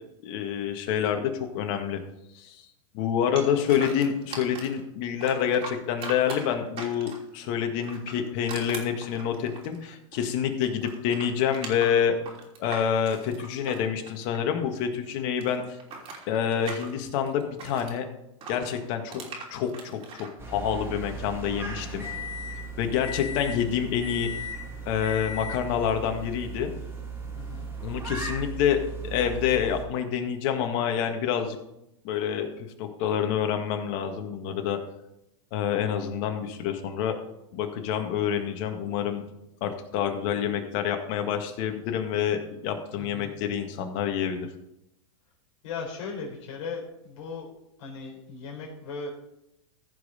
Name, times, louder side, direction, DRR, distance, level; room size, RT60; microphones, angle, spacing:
voice 1, 0.2-2.0 2.3-2.6 2.9-12.1 12.6-15.8 16.3-18.1 18.5-19.2 19.5-22.1 22.8-24.3 24.8-26.7 27.8-31.6 32.0-34.8 35.5-37.2 37.5-39.2 39.6-44.5, left 8 dB, 50° left, 5 dB, 1.8 m, -27 dB
voice 2, 3.4-3.7 27.3-27.7 42.9-43.3 45.6-47.5 47.8-49.1, left 4 dB, 70° left, -1 dB, 4.0 m, -37 dB
sound 1, 3.4-4.8 5.2-7.3 7.8-10.3 10.6-14.8 15.0-17.9 18.4-20.3, right 4 dB, 35° right, 3.1 m, -40 dB
sound 2, 20.4-29.8, right 1 dB, 15° right, 2.4 m, -36 dB
15.0 x 5.5 x 5.1 m, 0.84 s
hypercardioid pair, 120°, 17 cm